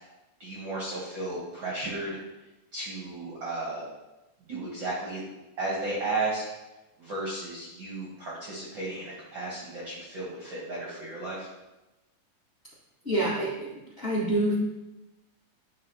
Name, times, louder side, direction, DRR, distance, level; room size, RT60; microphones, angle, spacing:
voice 1, 0.4-2.2 2.7-3.8 4.5-5.2 5.6-6.4 7.0-11.5, right 2 dB, 60° right, -5 dB, 1.3 m, -34 dB
voice 2, 13.0-14.6, right 1 dB, 30° left, -8 dB, 1.4 m, -27 dB
10.5 x 3.6 x 2.7 m, 1.0 s
omnidirectional pair, 3.4 m